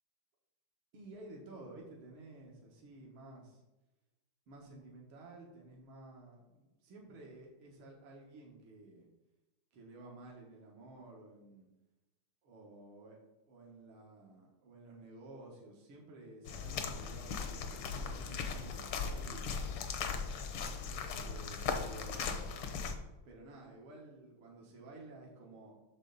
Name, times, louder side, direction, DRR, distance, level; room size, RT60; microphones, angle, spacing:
voice 1, 0.9-3.6 4.5-9.1 9.7-11.7 12.4-19.6 20.9-22.5 23.3-25.8, right 2 dB, 75° right, -2 dB, 2.3 m, -53 dB
sound 1, 16.4-22.9, left 5 dB, 75° left, 1.6 m, -38 dB
8.9 x 6.6 x 4.0 m, 0.99 s
omnidirectional pair, 2.4 m